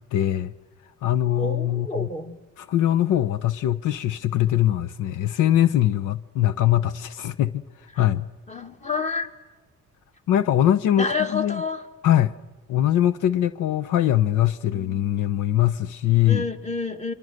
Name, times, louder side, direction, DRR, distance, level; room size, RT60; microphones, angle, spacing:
voice 1, 0.1-0.5 1.0-2.1 2.6-7.6 8.0-8.3 10.3-11.1 11.3-11.6 12.0-12.3 12.7-16.5, left 12 dB, 85° left, 0.8 m, -22 dB
voice 2, 1.4-2.4 8.5-9.3 11.0-11.8 16.3-17.1, left 4 dB, 25° left, 2.1 m, -29 dB
28.0 x 25.0 x 6.6 m
cardioid pair, 90°, 30 cm